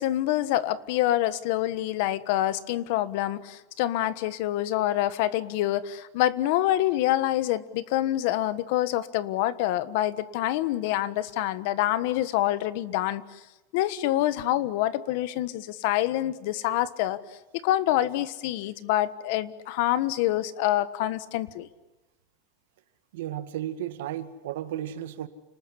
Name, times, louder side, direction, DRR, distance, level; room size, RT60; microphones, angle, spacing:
voice 1, 0.0-13.4 13.7-17.2 17.5-21.7, left 14 dB, 55° left, 15 dB, 1.3 m, -26 dB
voice 2, 23.1-25.3, right 11 dB, 80° right, 10 dB, 1.9 m, -34 dB
30.0 x 20.0 x 10.0 m, 1.1 s
supercardioid pair, 165°, 0 cm